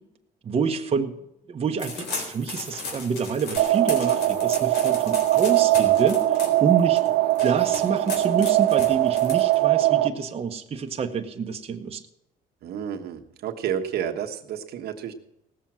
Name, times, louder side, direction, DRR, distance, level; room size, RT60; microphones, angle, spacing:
voice 1, 0.4-1.1 1.5-7.0 7.4-12.0, right 5 dB, 35° right, 3 dB, 1.1 m, -27 dB
sound 1, 1.8-9.8, left 3 dB, 80° left, 3.7 m, -37 dB
sound 2, 3.6-10.1, right 15 dB, 85° right, 1.0 m, -21 dB
voice 2, 12.6-15.1, right 9 dB, 70° right, 4 dB, 1.3 m, -30 dB
17.5 x 7.3 x 6.2 m, 0.84 s
cardioid pair, 110°, 17 cm